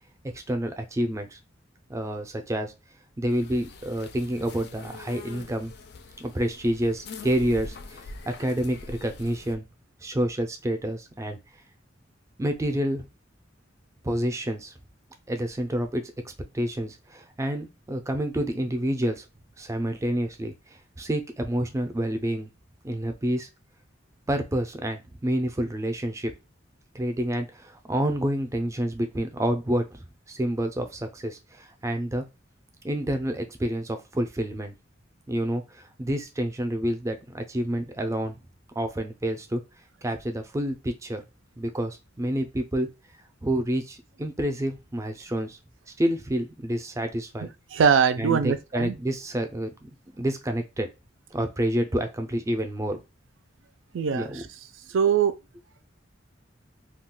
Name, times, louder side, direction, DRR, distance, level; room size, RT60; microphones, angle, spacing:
voice 1, 0.3-1.4 1.9-2.7 3.2-5.7 6.2-9.7 10.0-11.4 12.4-13.1 14.0-14.7 15.3-19.2 19.6-20.5 21.0-22.5 22.8-23.5 24.3-26.3 26.9-32.2 32.8-34.7 35.3-38.4 38.8-39.6 40.0-41.2 41.6-42.9 43.4-45.6 46.0-47.5 48.2-49.9 50.2-50.9 51.3-53.0 54.1-54.4, right 1 dB, 15° right, 0.4 m, -28 dB
sound 1, 3.3-9.5, left 3 dB, 55° left, 0.4 m, -43 dB
voice 2, 47.4-49.0 53.9-54.5 54.9-55.4, right 7 dB, 80° right, 0.4 m, -23 dB
2.3 x 2.2 x 3.6 m
head